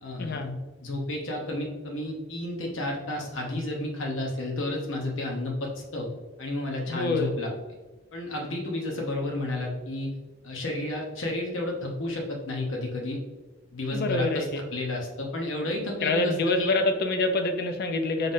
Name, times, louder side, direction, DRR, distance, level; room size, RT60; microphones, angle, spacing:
voice 1, 0.0-0.5 0.8-6.1 6.4-7.5 8.1-10.1 10.4-13.2 13.7-16.7, left 1 dB, 80° left, 0 dB, 0.9 m, -31 dB
voice 2, 6.9-7.3 13.9-14.6 16.0-18.3, left 2 dB, 50° left, 6 dB, 0.4 m, -26 dB
3.9 x 3.6 x 2.6 m, 1.2 s
head